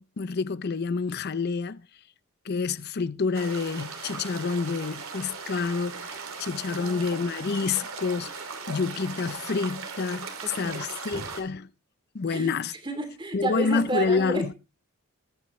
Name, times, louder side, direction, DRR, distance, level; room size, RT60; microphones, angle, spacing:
voice 1, 0.0-1.8 2.4-8.3 8.7-11.7 12.1-12.7 13.3-14.5, left 4 dB, 50° left, 0.5 m, -28 dB
sound 1, 3.3-11.4, right 4 dB, 75° right, 2.6 m, -38 dB
voice 2, 6.7-7.2 10.6-11.3 12.3-12.6 12.8-14.6, right 2 dB, 20° right, 2.8 m, -32 dB
20.0 x 9.0 x 3.1 m
head